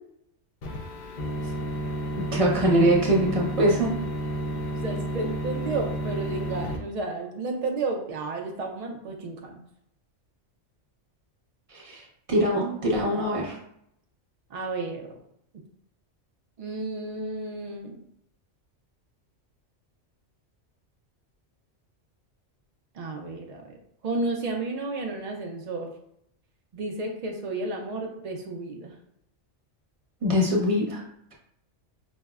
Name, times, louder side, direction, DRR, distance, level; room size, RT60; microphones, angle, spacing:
sound 1, 0.6-6.8, right 1 dB, 60° left, 0.5 m, -31 dB
voice 1, 2.2-3.9 11.7-13.6 30.2-31.0, equal, 35° right, -3 dB, 0.7 m, -23 dB
voice 2, 4.7-9.5 14.5-15.1 16.6-18.0 22.9-23.8 24.0-25.9 26.7-28.9, right 3 dB, 90° right, 1 dB, 0.3 m, -32 dB
5.1 x 2.1 x 2.3 m, 0.74 s
omnidirectional pair, 1.2 m